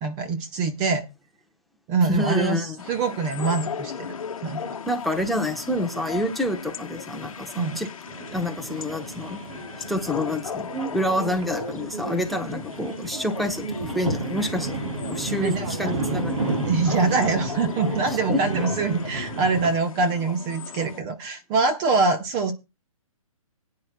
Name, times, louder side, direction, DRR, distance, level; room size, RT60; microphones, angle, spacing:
voice 1, 0.0-1.1 1.9-4.8 7.6-7.8 15.4-16.0 16.6-22.5, right 4 dB, 20° right, 6 dB, 1.0 m, -24 dB
voice 2, 2.0-2.8 4.8-7.9 8.3-9.4 9.9-16.4 18.3-18.4, left 1 dB, ahead, 7 dB, 0.8 m, -28 dB
sound 1, 2.8-21.0, left 7 dB, 70° left, 0.9 m, -37 dB
sound 2, 8.1-19.7, right 2 dB, 60° right, 5.1 m, -32 dB
19.5 x 9.5 x 2.3 m, 0.26 s
hypercardioid pair, 150°, 18 cm